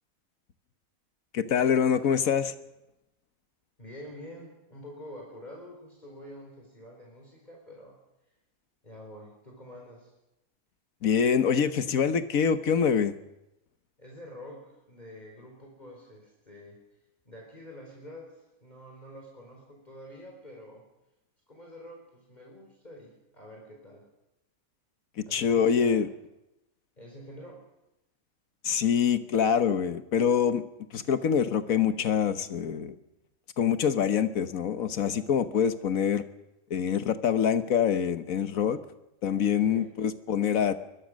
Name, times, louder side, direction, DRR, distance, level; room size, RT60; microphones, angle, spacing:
voice 1, 1.3-2.5 11.0-13.1 25.2-26.1 28.6-30.6 30.9-32.9 33.6-36.2 36.7-38.8 39.2-40.8, left 7 dB, 75° left, 11 dB, 1.6 m, -25 dB
voice 2, 3.8-8.0 8.8-10.1 14.0-16.8 17.3-20.9 21.5-24.1 25.3-26.2 27.0-27.6 39.6-39.9, equal, 30° left, -1 dB, 4.4 m, -47 dB
22.5 x 21.5 x 6.4 m, 0.92 s
omnidirectional pair, 1.5 m